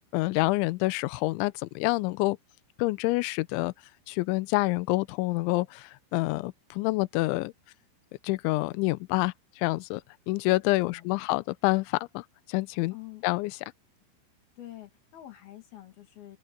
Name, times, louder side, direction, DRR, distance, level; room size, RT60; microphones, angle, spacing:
voice 1, 0.1-2.4 2.8-3.7 4.1-7.5 8.2-10.0 10.3-12.9 13.2-13.5, left 22 dB, 80° left, 2.8 m, -27 dB
voice 2, 12.9-13.2 14.6-16.4, left 14 dB, 55° left, 3.7 m, -46 dB
open air
omnidirectional pair, 5.9 m